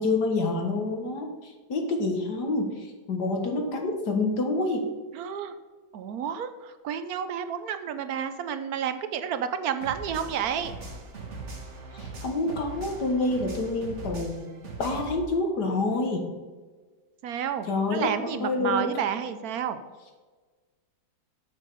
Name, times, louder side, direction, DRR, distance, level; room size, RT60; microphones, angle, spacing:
voice 1, 0.0-4.9 11.9-14.5 14.8-16.3 17.7-18.1 18.4-18.9, left 2 dB, 60° left, 3 dB, 1.9 m, -27 dB
voice 2, 5.1-5.5 5.9-10.7 17.2-19.8, right 8 dB, 70° right, 11 dB, 0.9 m, -30 dB
sound 1, 9.8-15.2, right 3 dB, 40° right, 1.7 m, -40 dB
7.7 x 7.3 x 5.4 m, 1.4 s
omnidirectional pair, 2.1 m